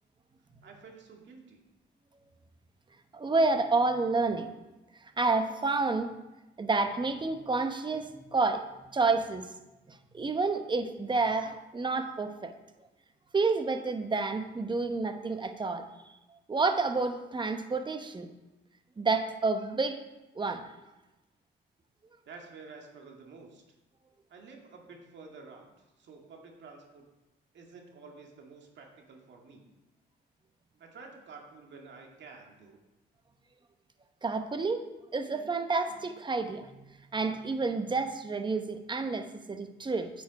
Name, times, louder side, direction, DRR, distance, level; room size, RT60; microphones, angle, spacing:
voice 1, 0.6-1.6 22.2-23.6 24.3-27.1 27.5-29.6 30.8-32.8, right 4 dB, 65° right, 1 dB, 2.0 m, -50 dB
voice 2, 3.1-4.5 5.2-6.1 6.6-8.6 8.9-9.5 9.9-12.5 13.3-15.9 16.5-18.3 19.0-20.0 20.4-20.7 34.2-34.8 35.1-40.1, right 3 dB, 25° right, 8 dB, 0.9 m, -29 dB
9.0 x 7.3 x 4.8 m, 1.0 s
cardioid pair, 90°, 20 cm